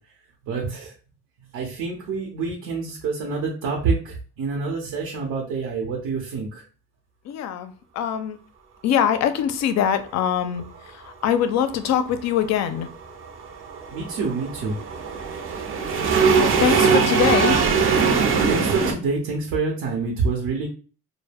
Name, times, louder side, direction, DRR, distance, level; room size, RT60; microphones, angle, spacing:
voice 1, 0.4-0.9 1.5-6.6 13.9-14.8 16.7-17.4 18.5-20.7, right 4 dB, 70° right, 0.8 m, -27 dB
voice 2, 7.3-8.4 8.8-12.9 16.3-17.6, left 9 dB, 55° left, 0.4 m, -23 dB
sound 1, 12.0-18.9, right 5 dB, 40° right, 0.5 m, -21 dB
2.2 x 2.0 x 3.3 m
cardioid pair, 105°, 33 cm